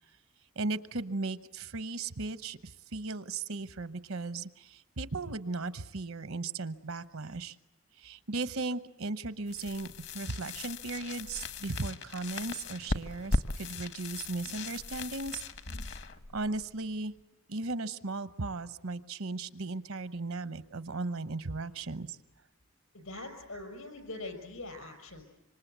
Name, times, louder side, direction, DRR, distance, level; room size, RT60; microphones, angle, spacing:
voice 1, 0.6-7.6 8.0-9.9 10.1-15.4 16.3-17.1 17.5-22.2, right 3 dB, 75° right, 13 dB, 0.9 m, -36 dB
sound 1, 9.5-17.2, left 2 dB, 55° left, 1.0 m, -38 dB
voice 2, 22.9-25.2, left 2 dB, 75° left, 6 dB, 6.0 m, -43 dB
26.0 x 25.0 x 8.1 m, 0.88 s
head